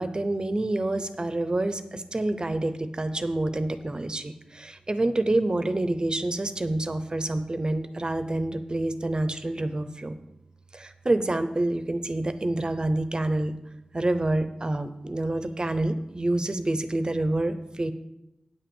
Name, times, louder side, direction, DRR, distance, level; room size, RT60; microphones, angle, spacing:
voice 1, 0.0-10.2 10.7-13.5 13.9-17.9, right 2 dB, 35° right, 10 dB, 0.8 m, -27 dB
9.3 x 6.0 x 7.1 m, 0.89 s
wide cardioid pair, 80°, 3 cm